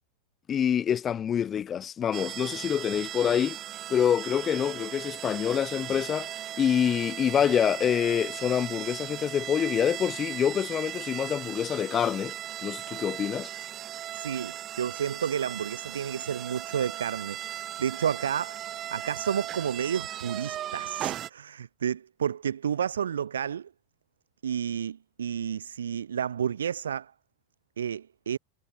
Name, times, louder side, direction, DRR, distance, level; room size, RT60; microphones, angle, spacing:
voice 1, 0.5-3.6 3.9-6.3 6.6-12.3 12.6-13.5, left 8 dB, 25° left, 0.5 m, -26 dB
sound 1, 2.1-21.3, right 12 dB, 30° right, 4.0 m, -38 dB
voice 2, 14.1-23.7 24.4-27.1 27.8-28.4, right 8 dB, 65° right, 0.4 m, -31 dB
figure-of-eight pair, 90°, 0 cm